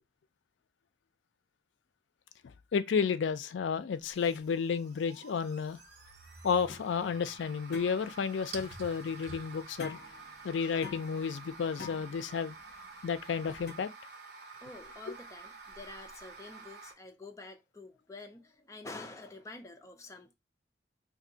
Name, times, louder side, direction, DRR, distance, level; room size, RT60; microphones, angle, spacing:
voice 1, 2.4-5.8 6.4-10.0 10.4-12.6 13.0-13.9 15.1-15.2, left 6 dB, 80° left, 0.4 m, -32 dB
sound 1, 4.0-16.9, right 3 dB, 65° right, 0.8 m, -49 dB
sound 2, 6.7-13.7, left 4 dB, 55° left, 0.9 m, -49 dB
voice 2, 14.6-20.3, left 2 dB, 15° left, 0.4 m, -48 dB
2.6 x 2.5 x 3.8 m
head